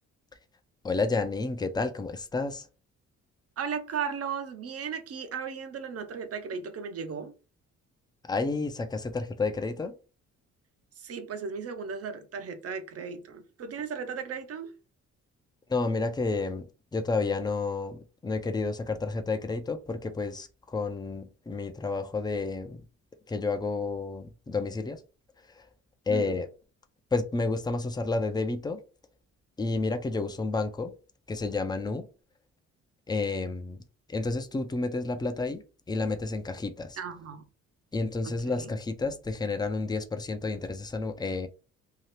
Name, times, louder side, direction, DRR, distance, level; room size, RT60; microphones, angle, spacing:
voice 1, 0.8-2.7 8.3-9.9 15.7-16.7 16.9-22.8 23.3-25.0 25.5-25.6 26.1-26.5 27.1-28.8 29.6-30.9 31.3-32.1 33.1-33.8 34.1-37.0 37.9-41.5, left 3 dB, 15° left, 0.5 m, -30 dB
voice 2, 3.6-7.3 11.0-14.7 26.1-26.3 37.0-37.4 38.2-38.7, right 6 dB, 50° right, 0.7 m, -36 dB
2.8 x 2.4 x 3.2 m
cardioid pair, 90°, 30 cm